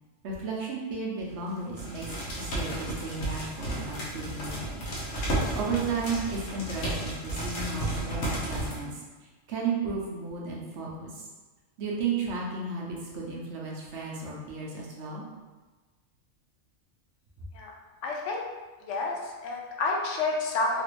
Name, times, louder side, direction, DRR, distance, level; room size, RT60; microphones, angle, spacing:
voice 1, 0.2-4.8 5.5-9.0 9.5-11.2 11.8-15.2, right 4 dB, 65° right, -3 dB, 0.9 m, -34 dB
sound 1, 1.3-1.5 1.8-8.8, right 1 dB, 85° left, 1.3 m, -33 dB
voice 2, 18.0-18.4 18.9-20.8, left 3 dB, 70° left, 0 dB, 0.9 m, -29 dB
3.2 x 2.5 x 3.0 m, 1.3 s
omnidirectional pair, 1.4 m